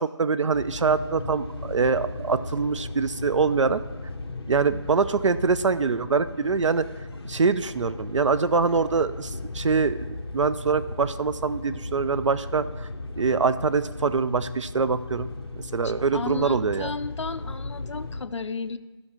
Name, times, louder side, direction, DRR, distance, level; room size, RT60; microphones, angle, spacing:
voice 1, 0.0-3.8 4.5-6.9 7.2-10.1 10.3-12.9 13.2-15.3 15.7-16.9, right 5 dB, 80° right, 14 dB, 0.4 m, -24 dB
sound 1, 0.5-18.2, left 2 dB, 55° left, 0.9 m, -36 dB
Gong, 0.8-15.0, equal, ahead, 0.9 m, -47 dB
voice 2, 15.8-18.8, left 4 dB, 75° left, 12 dB, 0.4 m, -34 dB
12.5 x 5.8 x 4.3 m, 1.2 s
figure-of-eight pair, 180°, 15 cm